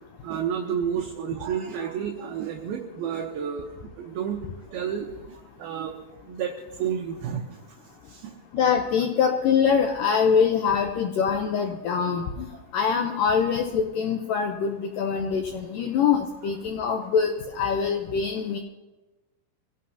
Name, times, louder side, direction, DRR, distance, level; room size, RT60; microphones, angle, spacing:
voice 1, 0.2-4.4 4.7-6.0 6.3-7.6 8.0-8.3 12.5-12.6, right 8 dB, 70° right, 1 dB, 2.6 m, -31 dB
voice 2, 8.5-12.5 12.7-18.6, left 6 dB, 90° left, 4 dB, 1.9 m, -24 dB
25.0 x 16.5 x 2.8 m, 1.1 s
omnidirectional pair, 5.0 m